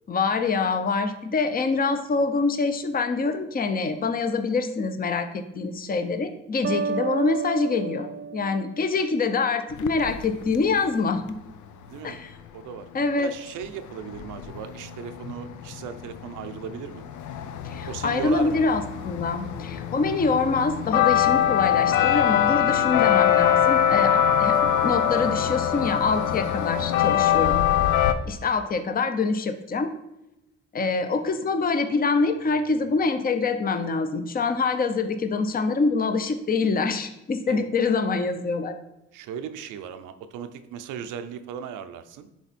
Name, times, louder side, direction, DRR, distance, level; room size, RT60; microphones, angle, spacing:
voice 1, 0.1-11.2 12.0-12.3 12.9-13.3 17.6-27.6 28.2-29.9 30.7-38.8, left 4 dB, 30° left, 8 dB, 0.7 m, -25 dB
sound 1, 6.6-9.5, right 6 dB, 40° right, 0.4 m, -32 dB
sound 2, 9.7-10.6 13.6-13.7 13.9-28.1, left 10 dB, 75° left, 0.6 m, -23 dB
voice 2, 11.9-12.2 12.5-12.9 13.2-17.0 17.8-18.6 37.5-37.6 39.1-42.3, right 8 dB, 90° right, 9 dB, 0.7 m, -37 dB
9.5 x 3.6 x 4.2 m, 0.89 s
cardioid pair, 90°, 30 cm